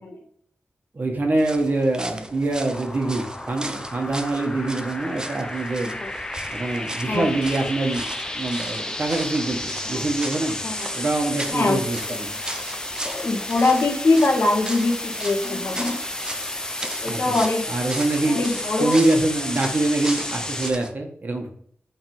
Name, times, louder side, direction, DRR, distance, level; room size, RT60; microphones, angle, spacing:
voice 1, 0.9-5.9 6.5-8.1 8.3-10.6 10.9-12.3 17.0-17.4 17.7-18.4 18.8-21.5, right 2 dB, 45° right, 2 dB, 1.7 m, -24 dB
sound 1, 1.4-20.9, right 1 dB, 15° right, 0.7 m, -37 dB
sound 2, 2.7-20.7, left 1 dB, 15° left, 0.7 m, -32 dB
voice 2, 10.6-10.9 11.5-12.2 13.0-16.0 17.0-17.6 18.3-19.0, left 2 dB, 60° left, 0 dB, 2.0 m, -23 dB
7.9 x 4.0 x 5.5 m, 0.63 s
wide cardioid pair, 105°, 4 cm